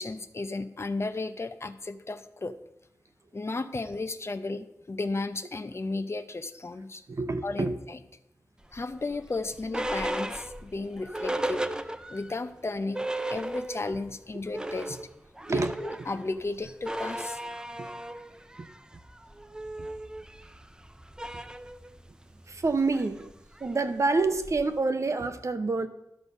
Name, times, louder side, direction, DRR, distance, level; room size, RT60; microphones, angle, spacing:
voice 1, 0.0-2.6 3.3-7.0 7.4-8.0 8.7-11.7 12.1-15.0 15.5-17.4, left 3 dB, 45° left, 10 dB, 0.6 m, -34 dB
voice 2, 7.1-7.7 15.4-15.7 17.8-17.9 18.6-18.7 22.5-23.3 23.6-25.9, right 3 dB, 50° right, 9 dB, 0.8 m, -27 dB
sound 1, 8.7-12.4 12.7-12.8 12.9-14.0 14.3-24.8, right 1 dB, 10° right, 0.6 m, -36 dB
11.5 x 6.3 x 5.4 m, 0.86 s
wide cardioid pair, 70°, 6 cm